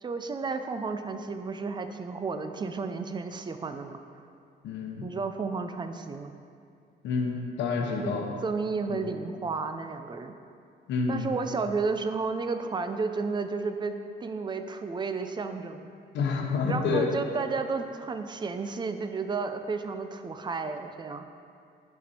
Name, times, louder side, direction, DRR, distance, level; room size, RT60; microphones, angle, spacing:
voice 1, 0.0-4.0 5.0-6.4 7.8-8.2 8.4-10.3 11.1-13.9 14.2-15.9 16.7-21.2, right 4 dB, 25° right, 7 dB, 0.4 m, -32 dB
voice 2, 4.6-5.1 7.0-8.3 8.9-9.1 10.9-11.3 16.1-17.1, left 4 dB, 80° left, 1 dB, 0.9 m, -28 dB
11.0 x 4.3 x 4.3 m, 2.4 s
cardioid pair, 140°, 18 cm